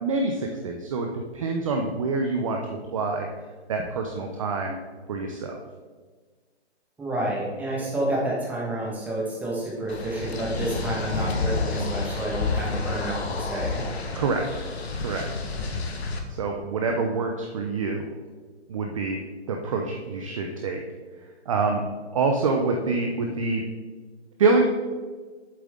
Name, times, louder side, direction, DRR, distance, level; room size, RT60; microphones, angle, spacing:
voice 1, 0.0-3.3 3.7-4.8 5.1-5.6 14.2-14.5 15.0-15.3 16.4-18.1 18.7-19.2 19.5-20.8 21.5-21.8 22.1-23.6 24.4-24.6, right 3 dB, 30° right, 2 dB, 0.6 m, -26 dB
voice 2, 7.0-13.8, right 1 dB, 5° right, -5 dB, 1.3 m, -29 dB
sound 1, 9.9-16.2, left 4 dB, 65° left, 1.4 m, -30 dB
7.7 x 7.6 x 3.7 m, 1.4 s
hypercardioid pair, 155°, 34 cm